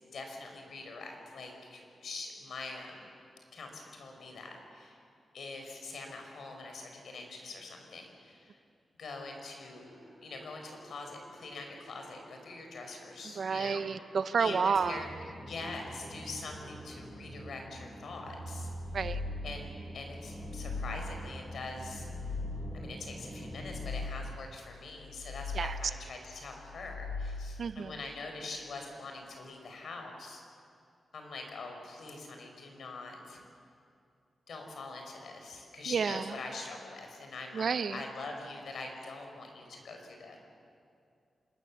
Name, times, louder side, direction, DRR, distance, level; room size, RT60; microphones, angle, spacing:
voice 1, 0.1-3.1 3.5-5.0 5.3-8.6 9.0-9.9 10.2-13.8 14.4-15.1 15.5-18.7 19.4-22.1 22.7-30.4 31.1-33.4 34.5-40.4, left 3 dB, 70° left, 3 dB, 4.7 m, -44 dB
sound 1, 9.7-18.6 18.9-19.6, right 1 dB, 25° right, 4.4 m, -60 dB
voice 2, 13.4-15.0 18.9-19.2 25.5-25.8 27.6-27.9 35.9-36.2 37.5-38.0, right 6 dB, 60° right, 12 dB, 0.8 m, -30 dB
sound 2, 14.7-23.9, right 1 dB, 10° left, 4.3 m, -45 dB
sound 3, 18.6-19.7 20.2-21.3 21.8-22.9 23.4-24.5 25.0-26.1 26.6-27.7, left 3 dB, 50° left, 5.2 m, -40 dB
26.5 x 20.0 x 7.3 m, 2.4 s
wide cardioid pair, 140°, 0 cm